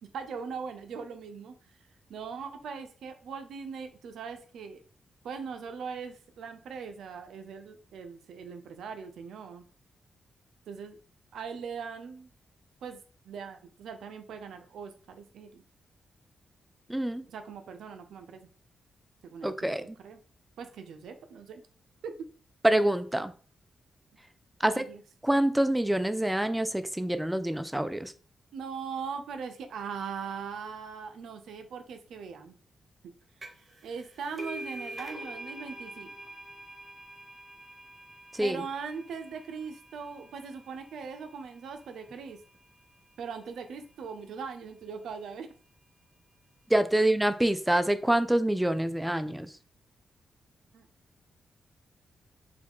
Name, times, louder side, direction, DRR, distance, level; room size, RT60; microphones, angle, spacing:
voice 1, 0.0-1.6 2.1-4.8 5.2-9.6 10.7-11.0 11.3-12.3 12.8-15.6 17.3-18.5 19.2-20.2 20.6-21.6 22.0-22.2 24.6-25.0 28.5-32.6 33.8-36.1 38.4-42.4 43.2-45.5 50.7-50.9, right 6 dB, 85° right, 8 dB, 0.5 m, -40 dB
voice 2, 16.9-17.2 19.4-19.8 22.6-23.3 24.6-24.9 25.2-28.1 38.3-38.6 46.7-49.5, right 1 dB, 5° right, 11 dB, 0.4 m, -26 dB
sound 1, 33.4-33.7 34.0-41.3, right 1 dB, 35° right, 1.0 m, -45 dB
4.7 x 2.3 x 3.6 m, 0.40 s
cardioid pair, 75°, 0 cm